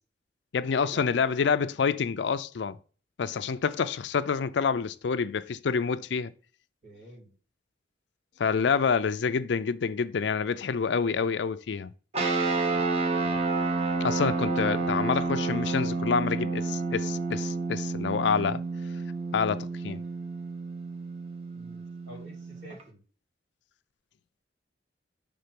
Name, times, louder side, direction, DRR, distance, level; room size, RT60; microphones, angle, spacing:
voice 1, 0.5-2.8 3.2-6.3 8.4-11.9 14.0-18.6 19.3-20.0, left 6 dB, 70° left, 0.4 m, -27 dB
voice 2, 6.8-7.3 21.5-23.0, right 1 dB, 75° right, 3.6 m, -48 dB
sound 1, 12.1-22.8, right 3 dB, 35° right, 1.0 m, -30 dB
5.7 x 3.6 x 5.2 m
head